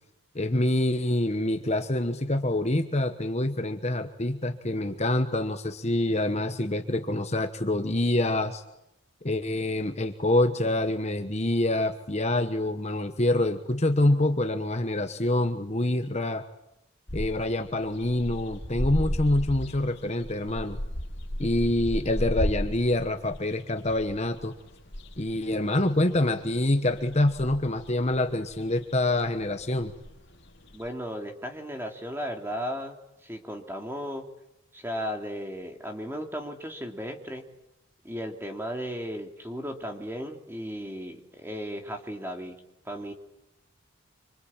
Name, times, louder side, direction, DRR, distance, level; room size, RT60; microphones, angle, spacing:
voice 1, 0.3-8.6 9.2-16.4 17.1-20.8 21.4-24.5 25.2-29.9, left 1 dB, 30° left, 7 dB, 1.2 m, -26 dB
sound 1, 17.1-30.9, equal, 55° left, 3.1 m, -35 dB
voice 2, 30.7-33.0 33.2-34.3 34.7-37.4 38.0-42.6 42.8-43.1, equal, 10° right, 4 dB, 3.0 m, -35 dB
26.0 x 25.5 x 8.9 m, 0.85 s
head